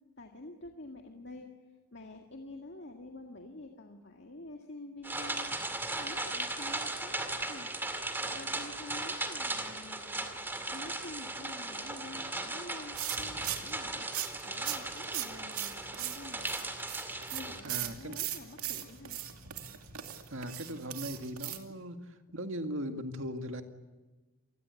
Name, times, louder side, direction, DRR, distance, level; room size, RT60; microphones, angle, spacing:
voice 1, 0.2-1.5 1.9-5.5 6.0-7.7 8.2-10.3 10.7-14.1 14.4-16.5 17.3-19.2, left 2 dB, 50° left, 3 dB, 1.9 m, -48 dB
sound 1, 5.0-17.6, right 2 dB, 10° right, 2.2 m, -37 dB
sound 2, 12.9-21.6, right 11 dB, 80° right, 2.6 m, -40 dB
voice 2, 17.6-18.2 20.3-23.6, equal, 60° right, 6 dB, 2.1 m, -39 dB
27.5 x 20.5 x 8.4 m, 1.2 s
head